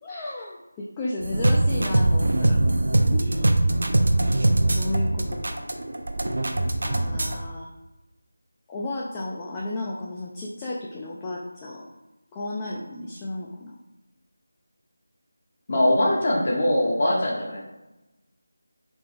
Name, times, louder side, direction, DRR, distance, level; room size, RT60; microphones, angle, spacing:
voice 1, 0.0-2.6 3.1-3.6 4.7-5.7 6.8-7.7 8.7-11.9 12.3-13.7, left 2 dB, 15° left, -4 dB, 0.4 m, -33 dB
sound 1, 1.2-7.4, right 1 dB, 60° right, 0.5 m, -22 dB
voice 2, 15.7-17.6, left 1 dB, 40° left, -3 dB, 0.8 m, -22 dB
3.7 x 3.4 x 3.4 m, 0.98 s
figure-of-eight pair, 165°, 0 cm